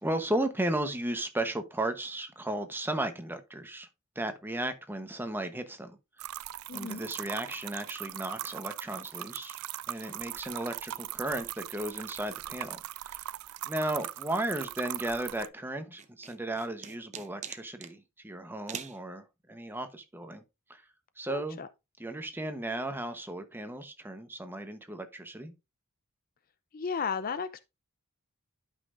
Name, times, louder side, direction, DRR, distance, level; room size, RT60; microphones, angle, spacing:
voice 1, 0.0-3.9 4.2-6.0 6.7-9.6 9.9-13.2 13.6-20.4 20.7-20.8 21.2-21.6 22.0-25.5, right 1 dB, 10° right, 1.0 m, -35 dB
sound 1, 6.2-15.5, right 13 dB, 75° right, 0.3 m, -40 dB
voice 2, 6.7-7.0 21.3-21.7 26.7-27.6, left 5 dB, 40° left, 0.5 m, -34 dB
sound 2, 16.0-17.9 18.7-19.0, right 7 dB, 30° right, 0.7 m, -42 dB
12.0 x 5.5 x 2.5 m
head